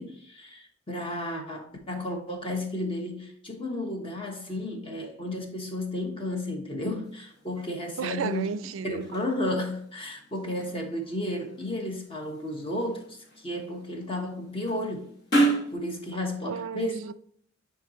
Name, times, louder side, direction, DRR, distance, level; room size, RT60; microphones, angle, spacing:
voice 1, 0.0-8.5 8.8-15.1 15.7-17.0, left 1 dB, 30° left, 1.2 m, -33 dB
sound 1, 7.0-15.7, right 2 dB, 60° left, 1.9 m, -33 dB
voice 2, 8.0-9.1 16.4-17.1, right 6 dB, 75° right, 0.4 m, -33 dB
9.3 x 3.8 x 2.9 m
head